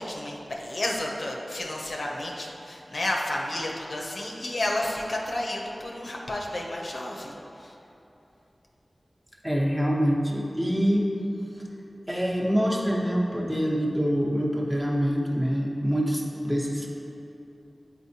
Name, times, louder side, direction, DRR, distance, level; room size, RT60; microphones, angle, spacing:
voice 1, 0.0-7.7, left 1 dB, 75° left, -1 dB, 0.7 m, -31 dB
voice 2, 9.4-11.1 12.1-16.9, equal, 15° right, -3 dB, 1.0 m, -25 dB
7.9 x 4.3 x 2.8 m, 2.9 s
cardioid pair, 45°, 0 cm